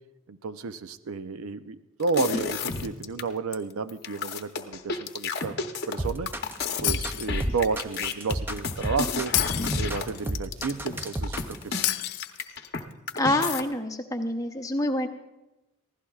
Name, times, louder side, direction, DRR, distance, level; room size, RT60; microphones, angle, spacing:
voice 1, 0.3-6.3 6.8-9.4 9.7-11.9, right 4 dB, 75° right, 11 dB, 0.6 m, -31 dB
sound 1, 2.0-3.2 3.5-3.6 3.9-12.8 13.1-13.6, left 4 dB, 45° left, 0.8 m, -31 dB
sound 2, 6.0-11.6, right 1 dB, 10° right, 0.4 m, -32 dB
Shatter, 6.8-7.8 9.3-10.3 11.8-12.8, left 17 dB, 80° left, 0.4 m, -30 dB
voice 2, 13.1-15.1, left 1 dB, 15° left, 5 dB, 0.7 m, -26 dB
23.5 x 15.5 x 2.4 m, 0.99 s
head